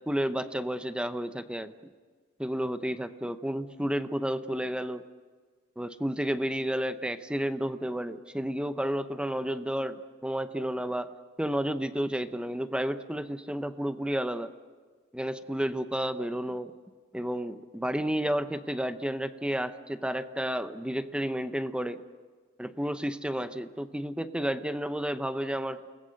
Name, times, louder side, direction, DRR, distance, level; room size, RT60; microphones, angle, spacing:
voice 1, 0.1-1.7 2.4-5.0 5.8-11.1 11.4-14.5 15.1-16.7 17.1-22.0 22.6-25.8, equal, 5° right, 11 dB, 0.7 m, -31 dB
29.5 x 19.5 x 6.5 m, 1.5 s
head